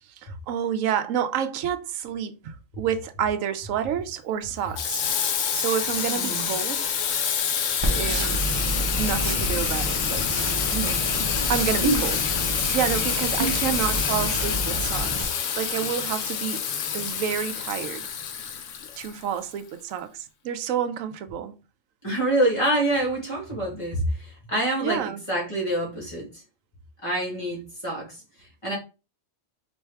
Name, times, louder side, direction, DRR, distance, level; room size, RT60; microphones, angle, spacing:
voice 1, 0.0-5.0 5.5-6.9 7.9-8.4 9.0-10.3 10.7-12.2 12.5-16.7 16.9-18.1 19.0-21.5 24.8-25.2, right 9 dB, 90° right, 1.0 m, -29 dB
Water tap faucet / Sink (filling or washing), 4.7-19.5, left 7 dB, 75° left, 1.0 m, -27 dB
voice 2, 6.1-6.5 11.8-12.0 13.4-13.6 22.0-26.3 27.0-28.8, right 1 dB, 25° left, 1.9 m, -26 dB
sound 1, 7.8-15.2, right 1 dB, 25° right, 1.0 m, -30 dB
4.4 x 3.1 x 3.4 m
omnidirectional pair, 1.3 m